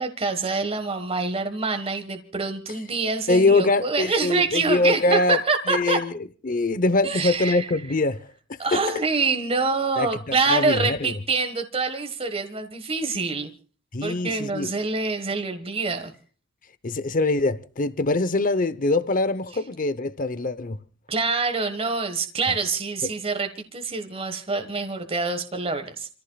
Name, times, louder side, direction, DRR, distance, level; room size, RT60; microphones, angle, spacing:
voice 1, 0.0-6.0 7.0-7.7 8.6-13.5 14.0-16.1 21.1-26.1, right 4 dB, 30° right, 1.5 m, -26 dB
voice 2, 3.3-5.4 5.7-6.1 6.4-8.3 8.7-8.8 10.0-11.1 13.9-14.7 16.8-20.8, left 2 dB, 45° left, 0.9 m, -23 dB
29.5 x 15.0 x 2.4 m
head